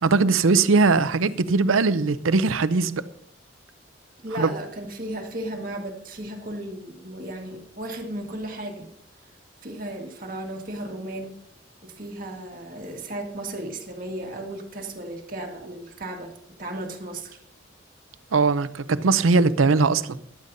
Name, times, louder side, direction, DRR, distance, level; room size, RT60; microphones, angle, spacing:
voice 1, 0.0-3.0 4.4-4.5 18.3-20.0, right 4 dB, 80° right, 0.6 m, -20 dB
voice 2, 4.2-8.9 9.6-11.3 11.8-16.3 16.6-17.4, right 1 dB, 45° right, 1.7 m, -35 dB
15.0 x 11.5 x 2.7 m
head